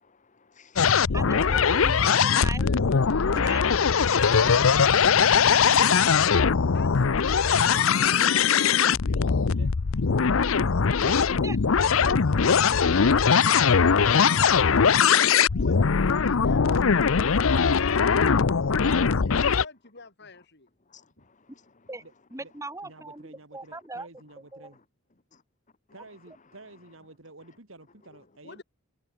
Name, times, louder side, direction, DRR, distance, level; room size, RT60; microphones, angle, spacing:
voice 1, 0.0-1.1 6.3-6.7 9.5-9.6 10.1-11.1 12.4-12.5 20.8-21.9 24.7-24.8 25.3-25.4 28.1-28.2 28.5-28.6, left 5 dB, 40° left, 1.4 m, -59 dB
sound 1, 0.8-19.6, left 6 dB, 85° left, 0.7 m, -21 dB
voice 2, 1.1-3.9 11.0-11.7 21.9-22.0 22.3-24.1 24.5-24.7, right 2 dB, 15° right, 4.8 m, -40 dB
voice 3, 2.6-4.6 6.4-9.4 14.1-20.7 21.2-21.3 28.4-28.6, left 3 dB, 55° left, 6.3 m, -46 dB
voice 4, 7.5-8.2 9.5-9.8 11.9-15.1 20.2-20.3 22.0-22.1 22.4-22.5 22.8-24.8 25.9-28.6, right 2 dB, 75° right, 3.4 m, -50 dB
head